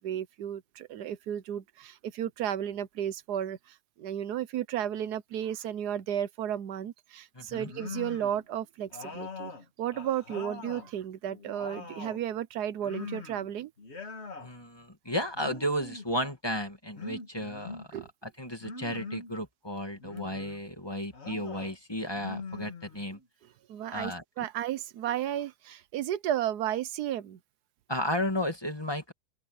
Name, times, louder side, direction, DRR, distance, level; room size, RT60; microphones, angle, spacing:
voice 1, 0.0-3.6 4.0-9.5 9.8-13.7 17.9-18.1 23.7-27.4, right 10 dB, 85° right, 1.3 m, -33 dB
voice 2, 7.3-7.7 14.4-23.2 23.9-24.5 27.9-29.1, equal, 15° left, 2.2 m, -34 dB
sound 1, 7.6-8.4 8.9-10.9 11.3-12.2 12.8-13.5 13.8-14.5 15.3-16.1 17.0-17.9 18.6-19.3 20.0-20.6 21.1-21.7 22.1-23.2, left 4 dB, 40° left, 2.3 m, -42 dB
open air
omnidirectional pair, 1.7 m